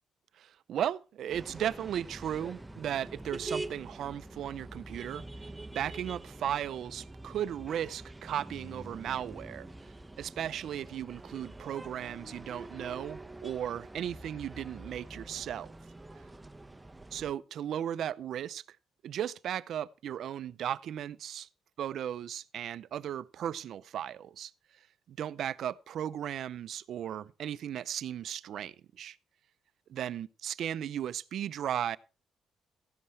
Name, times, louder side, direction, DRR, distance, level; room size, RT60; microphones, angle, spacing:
voice 1, 0.4-5.2 5.7-9.7 10.2-15.7 17.1-18.6 19.0-21.5 21.8-24.5 25.1-29.2 29.9-32.0, right 10 dB, 70° right, 0.5 m, -36 dB
sound 1, 1.3-17.3, right 2 dB, 10° right, 0.7 m, -45 dB
14.0 x 11.0 x 3.2 m
cardioid pair, 90°, 0 cm